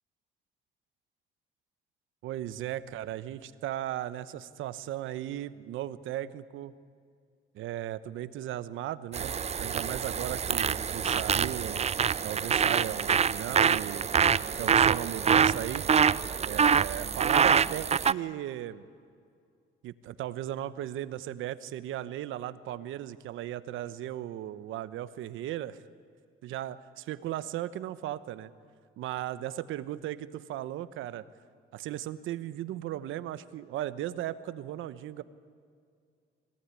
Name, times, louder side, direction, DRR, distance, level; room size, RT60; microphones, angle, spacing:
voice 1, 2.2-6.7 7.5-11.9 12.2-14.1 14.6-15.9 16.5-18.9 19.8-25.8 26.4-28.5 29.0-31.2 31.7-35.2, right 13 dB, 85° right, 14 dB, 1.0 m, -36 dB
sound 1, 9.1-18.1, right 7 dB, 35° right, 0.5 m, -25 dB
23.5 x 18.0 x 9.8 m, 2.2 s
cardioid pair, 90°, 20 cm